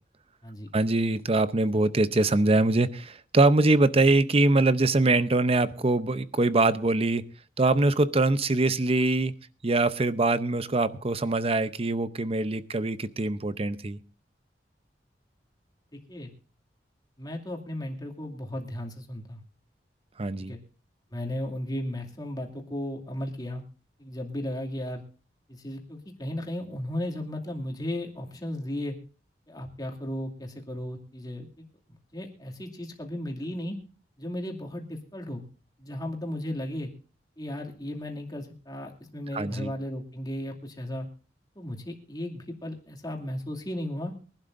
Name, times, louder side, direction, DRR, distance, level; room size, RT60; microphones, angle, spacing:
voice 1, 0.7-7.2 7.6-9.3 9.6-14.0 20.2-20.6 39.3-39.7, right 2 dB, 35° right, 0.7 m, -23 dB
voice 2, 15.9-16.3 17.2-19.4 20.4-20.6 21.1-23.6 24.0-25.0 25.5-29.0 29.5-31.7 32.1-33.8 34.2-35.4 35.8-36.9 37.4-41.1 41.6-44.1, left 1 dB, 25° left, 2.5 m, -35 dB
23.0 x 11.5 x 2.6 m
head